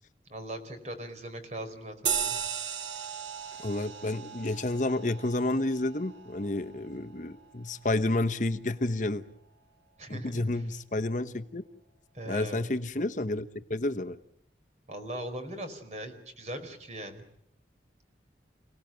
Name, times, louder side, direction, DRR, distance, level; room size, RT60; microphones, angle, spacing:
voice 1, 0.3-2.4 10.0-10.6 12.1-12.7 14.9-17.2, right 1 dB, 40° right, 7 dB, 4.7 m, -40 dB
sound 1, 2.1-7.0, right 7 dB, 85° right, 2.4 m, -36 dB
voice 2, 3.6-9.2 10.1-11.6 12.3-14.2, left 2 dB, 45° left, 9 dB, 1.0 m, -30 dB
29.0 x 18.5 x 9.1 m, 0.73 s
head